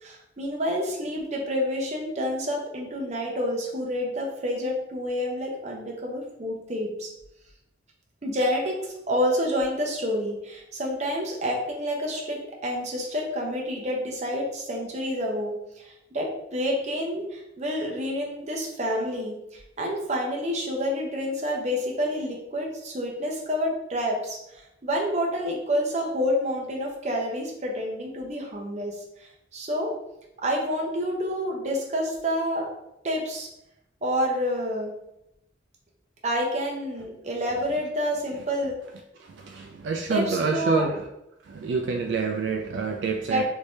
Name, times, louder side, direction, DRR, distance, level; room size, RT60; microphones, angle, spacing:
voice 1, 0.0-7.1 8.2-29.9 30.4-32.7 33.0-33.5 34.0-34.9 36.2-38.8 40.1-40.9 43.3-43.4, equal, 35° right, -1 dB, 0.7 m, -28 dB
voice 2, 39.2-41.0 41.5-43.4, right 4 dB, 70° right, 3 dB, 0.3 m, -27 dB
3.2 x 2.7 x 3.2 m, 0.84 s
head